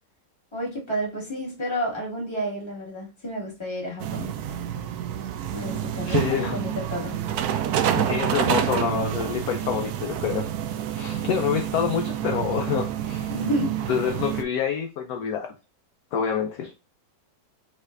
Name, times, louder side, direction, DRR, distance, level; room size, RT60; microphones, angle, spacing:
voice 1, 0.5-4.3 5.5-7.1 13.3-13.8, equal, 15° left, 2.0 m, -30 dB
sound 1, 4.0-14.4, right 10 dB, 70° right, 0.9 m, -28 dB
voice 2, 6.0-6.6 7.9-10.5 10.9-13.3 13.9-15.5 16.1-16.7, left 8 dB, 65° left, 1.0 m, -27 dB
5.6 x 3.1 x 2.5 m
omnidirectional pair, 2.0 m